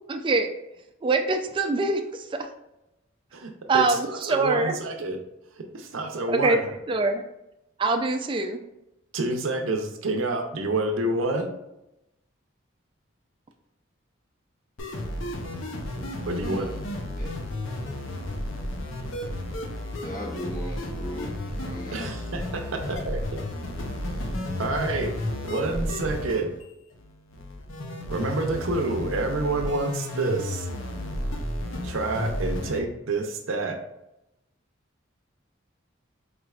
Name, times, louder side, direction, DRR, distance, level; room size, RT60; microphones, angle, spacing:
voice 1, 0.1-0.5 1.0-2.5 3.7-4.7 6.3-6.6 6.9-7.2 7.8-8.6, right 3 dB, 25° right, 5 dB, 0.3 m, -24 dB
voice 2, 3.3-5.2 5.6-6.8 9.1-11.6 16.3-16.8 21.9-23.2 24.2-25.1 25.4-26.5 28.1-30.7 31.8-33.8, right 2 dB, 80° right, 5 dB, 0.6 m, -28 dB
sound 1, 14.8-32.8, left 1 dB, 80° left, 0.6 m, -32 dB
voice 3, 16.3-16.8 17.2-17.3 20.0-22.6, left 1 dB, 40° left, 0 dB, 0.8 m, -39 dB
5.0 x 3.2 x 2.3 m, 0.89 s
head